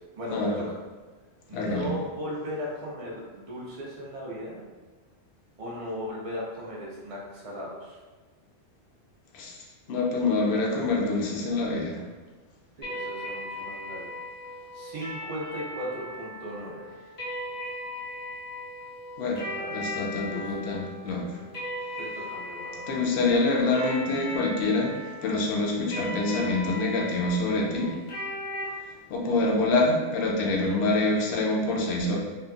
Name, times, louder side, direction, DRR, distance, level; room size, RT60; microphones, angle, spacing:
voice 1, 0.2-0.8 1.5-4.6 5.6-8.0 12.8-14.1 14.7-16.9 19.5-19.8 20.3-20.5 22.0-22.8, equal, 45° right, -4 dB, 0.5 m, -37 dB
voice 2, 1.5-1.9 9.3-9.6 9.9-12.0 19.2-19.4 19.7-21.4 22.9-28.0 29.1-32.2, left 2 dB, 70° left, -2 dB, 0.8 m, -26 dB
sound 1, 12.8-28.6, left 1 dB, 35° left, 0.6 m, -38 dB
2.7 x 2.3 x 2.3 m, 1.3 s
omnidirectional pair, 1.2 m